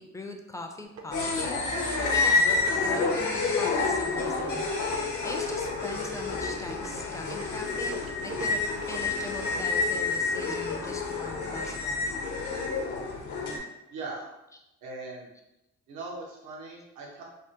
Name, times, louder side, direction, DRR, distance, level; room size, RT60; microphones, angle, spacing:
voice 1, 0.0-1.6 2.1-7.9 8.2-12.2, left 2 dB, 10° left, 3 dB, 0.3 m, -41 dB
sound 1, 0.8-1.5 1.8-10.7, right 4 dB, 50° right, 0.4 m, -45 dB
sound 2, 1.1-13.6, left 4 dB, 75° left, 0.8 m, -29 dB
voice 2, 13.9-14.3 14.8-15.3 15.9-17.2, right 3 dB, 85° right, -2 dB, 0.7 m, -39 dB
3.3 x 2.0 x 2.8 m, 0.91 s
cardioid pair, 90°, 30 cm